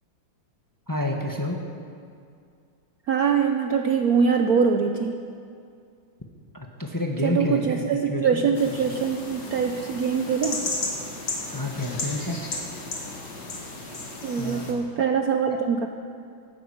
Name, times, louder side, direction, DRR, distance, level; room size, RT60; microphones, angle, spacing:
voice 1, 0.9-1.6 6.5-7.8 8.0-8.4 8.9-9.0 11.5-12.4 14.3-14.7 15.0-15.1 15.5-15.6, left 1 dB, 10° left, 1 dB, 1.1 m, -29 dB
voice 2, 3.1-5.2 7.2-10.6 14.2-15.9, right 6 dB, 65° right, 5 dB, 1.0 m, -23 dB
sound 1, 8.6-14.7, left 3 dB, 60° left, 2.6 m, -34 dB
14.5 x 12.0 x 8.5 m, 2.3 s
omnidirectional pair, 2.2 m